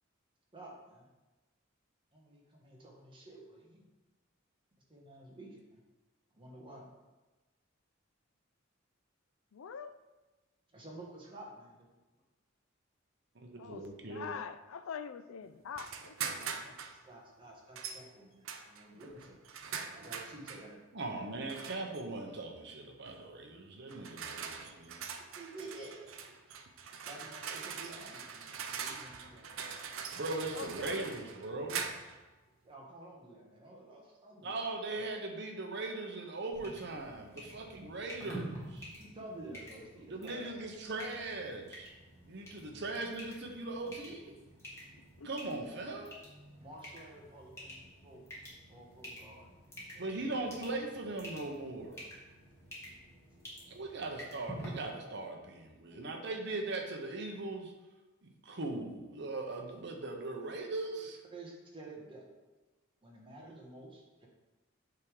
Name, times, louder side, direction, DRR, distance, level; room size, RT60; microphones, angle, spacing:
voice 1, 0.5-1.1 2.1-3.8 4.9-5.8 6.3-6.9 10.7-11.9 13.6-14.1 16.7-19.4 19.9-20.8 21.1-21.3 25.3-26.4 27.1-29.6 32.6-34.6 37.6-37.9 39.0-40.5 46.6-48.3 48.7-49.5 49.9-50.3 55.9-56.1 60.5-60.6 61.3-62.2 63.0-64.3, right 2 dB, 25° right, -2 dB, 1.4 m, -51 dB
voice 2, 9.5-9.9 13.6-16.7 30.5-31.1 45.2-45.3, left 6 dB, 80° left, 12 dB, 0.4 m, -44 dB
voice 3, 13.3-14.3 20.9-25.0 30.2-31.9 34.4-38.9 40.1-41.9 42.2-44.4 45.2-46.2 50.0-52.1 53.7-57.7 58.2-61.2, right 2 dB, 55° right, 3 dB, 0.9 m, -39 dB
sound 1, 15.8-17.0 17.8-18.0 18.5-20.7 21.5-22.0 23.1-23.3 23.9-32.2, right 6 dB, 75° right, 0.6 m, -42 dB
sound 2, 36.5-54.7, equal, 15° left, 1.6 m, -50 dB
8.1 x 3.6 x 4.8 m, 1.2 s
head